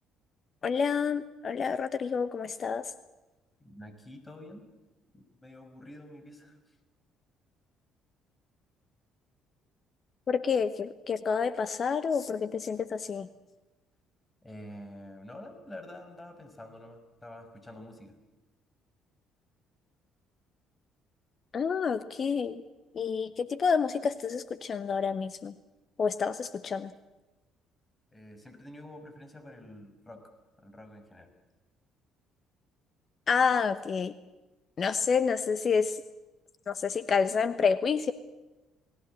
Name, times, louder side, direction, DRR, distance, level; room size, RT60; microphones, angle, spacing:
voice 1, 0.6-2.9 10.3-13.3 21.5-22.6 22.9-25.5 26.0-26.9 33.3-34.1 34.8-36.0 36.7-38.1, left 6 dB, 45° left, 14 dB, 1.0 m, -28 dB
voice 2, 3.6-4.7 5.1-6.8 14.4-18.2 28.1-30.3 30.6-31.3, left 1 dB, 20° left, 8 dB, 5.6 m, -48 dB
29.0 x 18.5 x 7.7 m, 1.1 s
hypercardioid pair, 50°, 0 cm